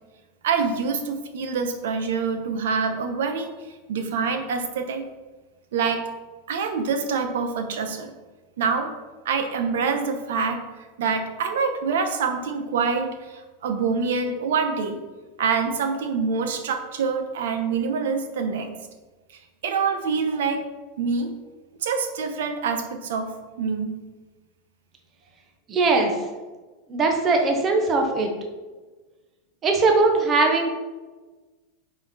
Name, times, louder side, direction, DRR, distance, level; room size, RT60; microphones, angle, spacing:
voice 1, 0.4-3.6 3.9-5.0 5.7-6.1 6.5-8.1 8.6-8.9 9.2-10.6 11.0-15.0 15.4-18.7 19.6-20.6 21.0-21.3 21.8-23.9, right 5 dB, 85° right, 6 dB, 1.0 m, -25 dB
voice 2, 25.7-26.2 26.9-28.3 29.6-30.7, right 3 dB, 20° right, 2 dB, 0.9 m, -20 dB
9.4 x 4.4 x 4.2 m, 1.3 s
supercardioid pair, 175°, 0 cm